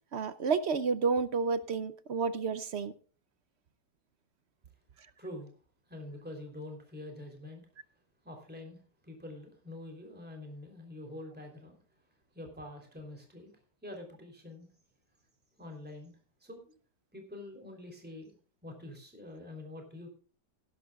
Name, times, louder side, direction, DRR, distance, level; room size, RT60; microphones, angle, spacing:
voice 1, 0.1-2.9, right 5 dB, 55° right, 13 dB, 0.7 m, -30 dB
voice 2, 5.2-5.5 5.9-7.6 8.2-11.8 12.3-13.5 13.8-14.7 15.6-16.1 16.4-16.7 17.1-18.3 18.6-20.1, left 1 dB, 5° right, 2 dB, 3.3 m, -46 dB
18.5 x 11.0 x 2.4 m, 0.41 s
omnidirectional pair, 1.9 m